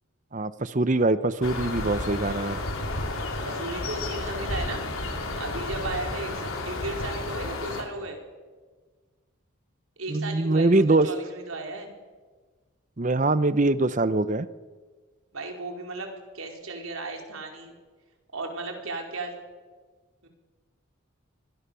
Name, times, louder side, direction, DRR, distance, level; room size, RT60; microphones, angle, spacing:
voice 1, 0.3-2.6 10.1-11.1 13.0-14.5, right 2 dB, 35° right, 15 dB, 0.7 m, -23 dB
sound 1, 1.4-7.8, left 2 dB, 90° left, 4.0 m, -32 dB
voice 2, 3.4-4.9 5.4-8.2 10.0-11.9 15.3-17.7 18.3-19.3 20.2-20.3, right 2 dB, 90° right, 3 dB, 4.6 m, -35 dB
26.0 x 21.5 x 6.9 m, 1.4 s
head